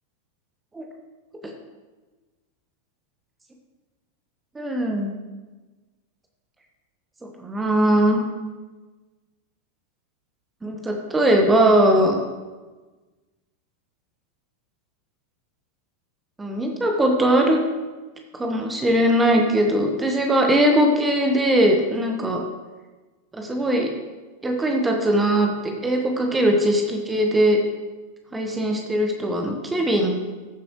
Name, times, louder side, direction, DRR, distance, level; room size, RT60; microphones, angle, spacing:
voice 1, 4.5-5.2 7.4-8.2 10.6-12.2 16.4-17.6 18.3-22.4 23.3-23.9 24.4-27.6 28.3-30.1, right 1 dB, 10° right, 2 dB, 1.2 m, -20 dB
14.5 x 7.6 x 3.1 m, 1.3 s
figure-of-eight pair, 90°, 0 cm